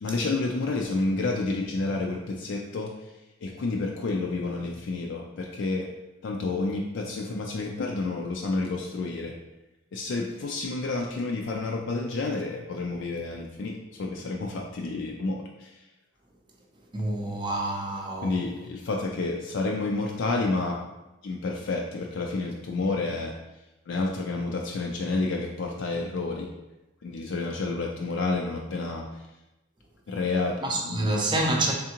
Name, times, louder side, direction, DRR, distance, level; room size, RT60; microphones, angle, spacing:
voice 1, 0.0-2.9 3.4-5.9 6.2-9.3 9.9-15.7 18.2-20.8 21.2-23.3 23.9-26.5 27.0-29.0 30.1-31.2, left 3 dB, 60° left, 0 dB, 0.4 m, -30 dB
voice 2, 16.9-18.4 30.6-31.7, right 1 dB, 20° right, 0 dB, 0.5 m, -27 dB
3.6 x 3.4 x 2.9 m, 1.0 s
head